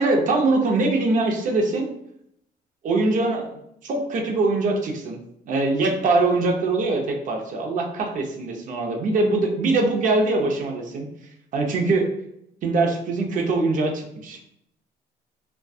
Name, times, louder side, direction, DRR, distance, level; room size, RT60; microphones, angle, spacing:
voice 1, 0.0-1.9 2.8-5.2 5.5-11.1 11.5-12.1 12.6-14.4, right 3 dB, 50° right, 2 dB, 0.6 m, -22 dB
2.5 x 2.2 x 2.3 m, 0.76 s
cardioid pair, 110°, 17 cm